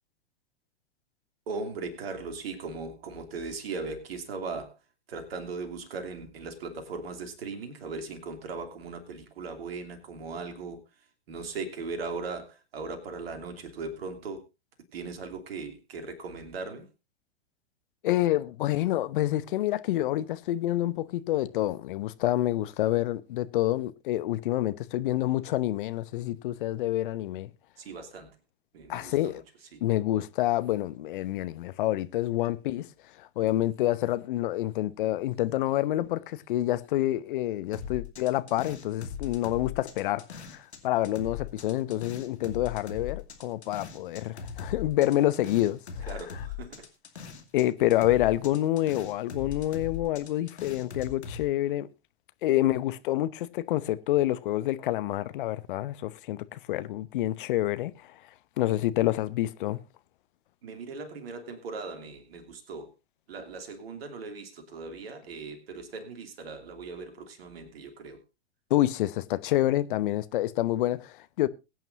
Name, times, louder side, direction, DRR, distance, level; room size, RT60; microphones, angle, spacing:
voice 1, 1.5-4.8 5.1-14.4 14.9-16.9 27.8-28.4 28.7-29.4 29.7-29.8 46.1-46.9 60.6-62.9 63.3-68.2, right 4 dB, 60° right, 2.9 m, -38 dB
voice 2, 18.0-27.5 28.9-29.4 29.8-32.9 33.1-46.1 47.5-51.9 52.4-58.2 58.6-59.8 68.7-71.5, left 14 dB, 50° left, 0.9 m, -28 dB
sound 1, 37.7-40.8 41.0-47.6 47.9-51.4, left 8 dB, 70° left, 2.5 m, -39 dB
22.0 x 9.0 x 2.6 m
figure-of-eight pair, 100°, 34 cm